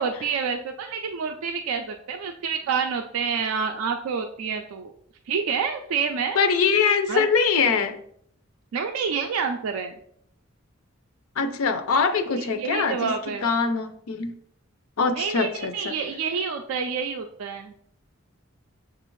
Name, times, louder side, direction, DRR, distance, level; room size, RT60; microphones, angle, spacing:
voice 1, 0.0-4.9 5.3-6.4 7.1-7.3 8.7-10.0 12.3-13.5 15.2-17.7, right 6 dB, 85° right, 5 dB, 0.4 m, -28 dB
voice 2, 6.4-8.0 11.4-13.1 13.4-14.3 15.0-15.9, left 5 dB, 85° left, 9 dB, 0.5 m, -23 dB
6.8 x 2.4 x 3.1 m, 0.67 s
head